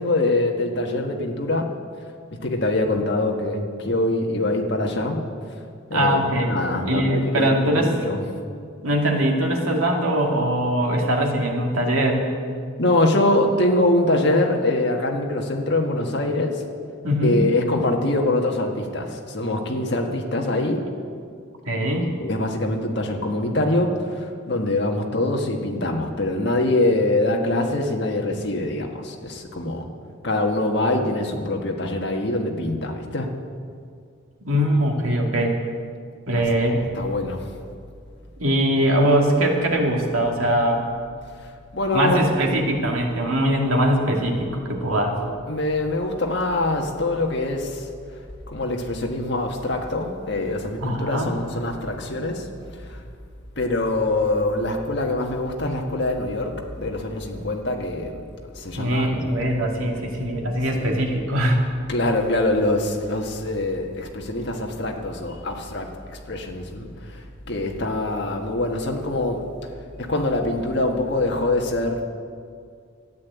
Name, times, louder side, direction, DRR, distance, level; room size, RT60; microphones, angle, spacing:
voice 1, 0.0-1.7 2.4-5.2 5.9-8.2 12.8-16.6 17.2-20.8 22.0-29.9 30.2-33.3 36.7-37.4 41.4-42.2 45.5-47.9 48.5-52.5 52.8-53.0 53.6-58.2 58.5-59.4 60.7-60.9 61.9-69.4 70.0-72.0, left 2 dB, 55° left, 1 dB, 1.6 m, -24 dB
voice 2, 5.9-6.5 6.9-7.9 8.8-12.2 17.0-17.4 21.7-22.1 34.4-35.6 36.3-36.8 38.4-40.8 41.9-45.2 50.8-51.3 58.8-61.6, right 1 dB, 80° right, 1 dB, 2.3 m, -21 dB
13.0 x 9.6 x 8.3 m, 2.2 s
head